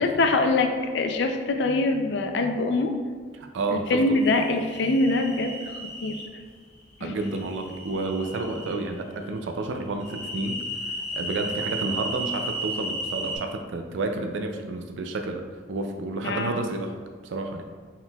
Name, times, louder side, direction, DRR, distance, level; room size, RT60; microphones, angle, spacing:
voice 1, 0.0-2.9 3.7-5.7 6.0-6.2 7.0-7.1 16.2-16.7, left 2 dB, 65° left, 5 dB, 0.4 m, -24 dB
voice 2, 3.3-4.2 7.0-15.4 15.7-17.6, right 3 dB, 75° right, 5 dB, 0.4 m, -30 dB
sound 1, 4.2-6.2 7.2-8.7 10.0-13.4, right 1 dB, 40° left, 1.2 m, -34 dB
4.3 x 3.8 x 2.3 m, 1.5 s
head